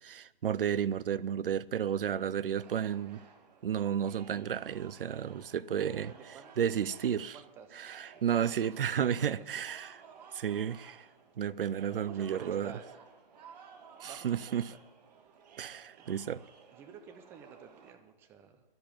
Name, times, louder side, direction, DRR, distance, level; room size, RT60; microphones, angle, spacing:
voice 1, 0.0-3.2 3.6-6.1 6.6-7.4 7.7-10.0 10.3-11.1 11.4-12.7 14.0-14.7 15.6-16.4, right 9 dB, 70° right, 0.6 m, -32 dB
sound 1, 2.6-17.9, right 6 dB, 45° right, 1.9 m, -56 dB
voice 2, 5.7-6.7 7.1-7.8 8.9-9.7 11.9-12.9 14.0-14.8 16.0-16.1 16.7-18.6, right 7 dB, 10° right, 0.5 m, -51 dB
12.0 x 11.0 x 7.2 m
hypercardioid pair, 145°, 29 cm